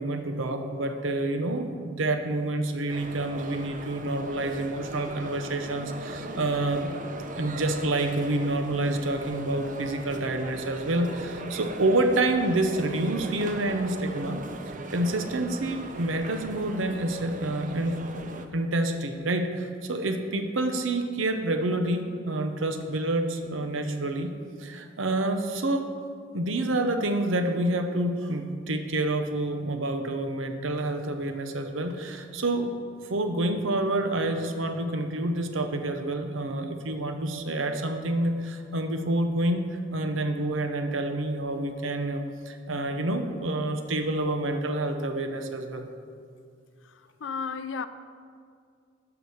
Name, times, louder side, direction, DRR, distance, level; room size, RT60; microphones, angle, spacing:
voice 1, 0.0-6.9 7.3-14.4 14.9-18.0 18.5-24.3 24.6-25.9 26.3-32.7 33.0-45.9, right 2 dB, 80° right, 0.8 m, -28 dB
sound 1, 2.9-18.5, right 2 dB, 40° right, 0.6 m, -39 dB
voice 2, 47.2-47.9, left 5 dB, 70° left, 0.4 m, -32 dB
12.0 x 4.9 x 6.3 m
head